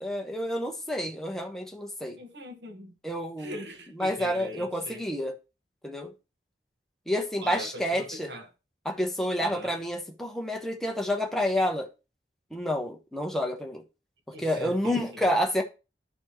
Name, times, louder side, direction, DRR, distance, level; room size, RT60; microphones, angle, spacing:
voice 1, 0.0-2.2 3.0-3.6 4.0-5.3 5.8-6.1 7.1-8.3 8.8-11.9 12.5-13.8 14.4-15.6, equal, ahead, 1.1 m, -29 dB
voice 2, 2.2-2.9 3.4-5.0 7.4-8.5 9.4-9.7 14.3-15.3, equal, 80° right, 1.5 m, -42 dB
13.0 x 4.3 x 3.0 m
head